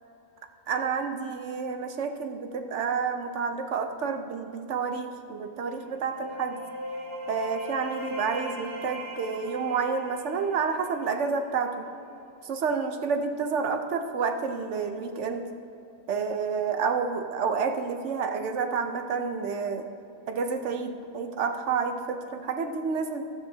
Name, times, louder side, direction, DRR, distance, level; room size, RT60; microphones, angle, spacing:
voice 1, 0.7-6.6 7.3-11.9 12.4-15.5 16.1-19.9 20.3-23.2, right 5 dB, 65° right, 6 dB, 1.1 m, -29 dB
sound 1, 5.6-11.3, equal, 20° right, 2.9 m, -39 dB
15.0 x 12.0 x 2.8 m, 2.7 s
omnidirectional pair, 1.4 m